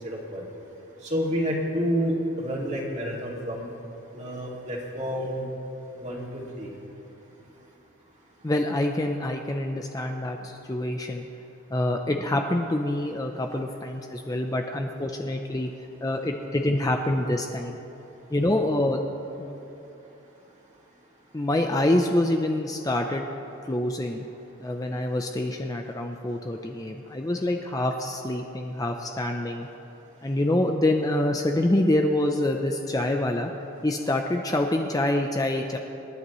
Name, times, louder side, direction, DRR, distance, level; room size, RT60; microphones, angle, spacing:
voice 1, 0.0-0.4 1.0-3.7 4.1-5.4 6.0-6.7, equal, 35° right, -3 dB, 2.3 m, -29 dB
voice 2, 8.4-11.3 11.7-15.7 16.0-17.8 18.3-19.0 19.4-19.6 21.3-23.3 23.7-24.2 24.6-29.7 30.2-33.5 33.8-35.8, left 1 dB, 15° left, 3 dB, 0.5 m, -26 dB
26.5 x 11.0 x 3.1 m, 2.9 s
head